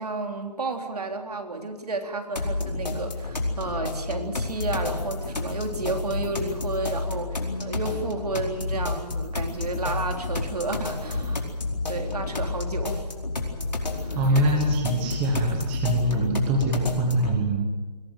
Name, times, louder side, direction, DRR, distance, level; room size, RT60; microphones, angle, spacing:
voice 1, 0.0-11.5 11.9-13.0 14.0-14.2, right 3 dB, 65° right, 4 dB, 3.7 m, -32 dB
sound 1, 2.4-17.4, left 3 dB, 85° left, 4.6 m, -30 dB
voice 2, 14.1-17.6, right 1 dB, 5° right, 1 dB, 1.3 m, -24 dB
21.5 x 19.0 x 9.1 m, 1.3 s
hypercardioid pair, 175°, 21 cm